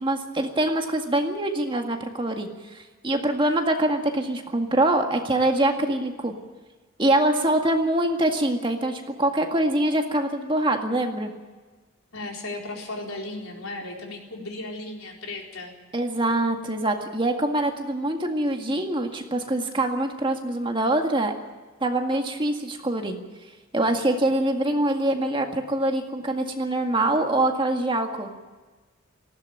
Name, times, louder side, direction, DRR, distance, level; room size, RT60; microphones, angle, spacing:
voice 1, 0.0-6.3 7.0-11.3 15.9-21.3 21.8-23.2 23.7-28.3, right 1 dB, 25° right, 3 dB, 1.9 m, -24 dB
voice 2, 12.1-15.7, left 2 dB, 85° left, 1 dB, 4.3 m, -35 dB
19.0 x 16.0 x 9.1 m, 1.3 s
head